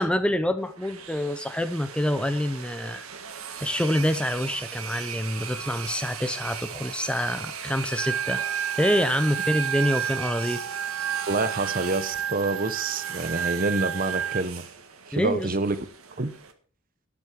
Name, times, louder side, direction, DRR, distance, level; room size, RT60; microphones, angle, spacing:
voice 1, 0.0-3.1 3.6-8.4 8.8-10.6 15.1-15.6, equal, 5° left, 0.5 m, -26 dB
sound 1, 0.6-16.5, right 7 dB, 85° right, 1.7 m, -39 dB
Organ, 8.0-14.4, right 8 dB, 65° right, 0.6 m, -30 dB
voice 2, 11.3-14.7 15.1-15.8 16.2-16.3, right 3 dB, 40° right, 1.0 m, -27 dB
12.5 x 9.8 x 4.6 m
head